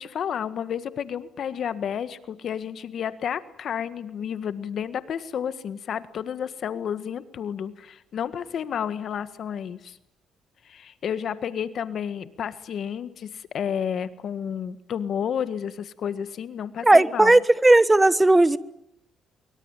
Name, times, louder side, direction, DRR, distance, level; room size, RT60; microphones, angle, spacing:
voice 1, 0.0-10.0 10.6-17.4, left 8 dB, 60° left, 13 dB, 1.6 m, -31 dB
voice 2, 16.8-18.6, right 2 dB, 15° right, 17 dB, 1.3 m, -16 dB
24.0 x 24.0 x 9.1 m, 0.78 s
cardioid pair, 90°, 0 cm